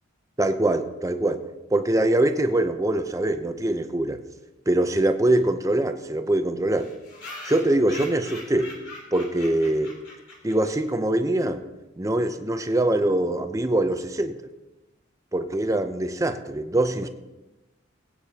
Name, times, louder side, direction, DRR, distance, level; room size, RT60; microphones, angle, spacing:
voice 1, 0.4-1.4 1.7-4.2 4.7-6.9 7.4-8.7 9.1-9.9 10.4-11.6 12.0-14.3 15.3-17.1, right 1 dB, 15° right, 8 dB, 0.7 m, -23 dB
sound 1, 5.0-5.1 5.3-5.4 5.7-5.8 6.0-6.1 6.7-10.9, left 2 dB, 65° left, 2.9 m, -42 dB
21.5 x 8.7 x 2.9 m, 1.0 s
head